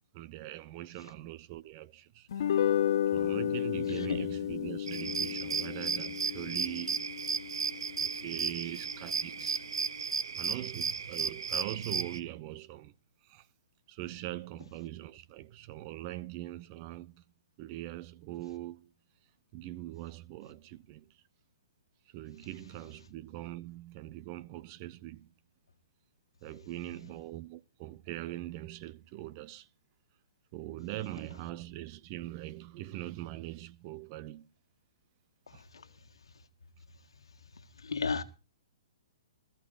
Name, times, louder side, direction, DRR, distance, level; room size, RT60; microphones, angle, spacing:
voice 1, 0.1-2.5 3.1-7.1 8.0-9.6 10.3-12.9 13.2-13.5 13.9-17.2 17.6-18.9 19.5-21.0 22.1-25.3 26.4-29.7 30.5-34.5 35.5-35.6, right 15 dB, 35° right, 0.8 m, -42 dB
sound 1, 2.3-8.8, left 10 dB, 65° left, 0.6 m, -33 dB
sound 2, 4.9-12.2, right 6 dB, 80° right, 0.7 m, -34 dB
voice 2, 37.8-38.2, left 5 dB, 85° left, 1.5 m, -33 dB
21.0 x 14.0 x 2.5 m
hypercardioid pair, 140°, 3 cm